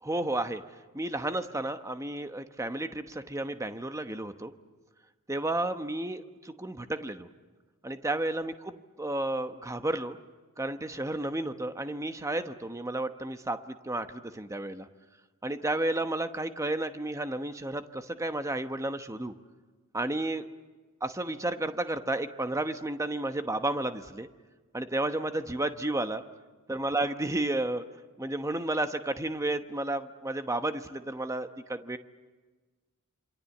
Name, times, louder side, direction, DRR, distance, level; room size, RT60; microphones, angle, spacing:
voice 1, 0.0-0.6 0.9-4.5 5.3-7.3 7.8-8.5 9.0-10.2 10.6-14.9 15.4-19.3 19.9-20.4 21.0-24.3 24.7-26.2 26.7-27.8 28.2-32.0, right 2 dB, 15° right, 8 dB, 1.1 m, -32 dB
27.5 x 25.5 x 8.4 m, 1.3 s
head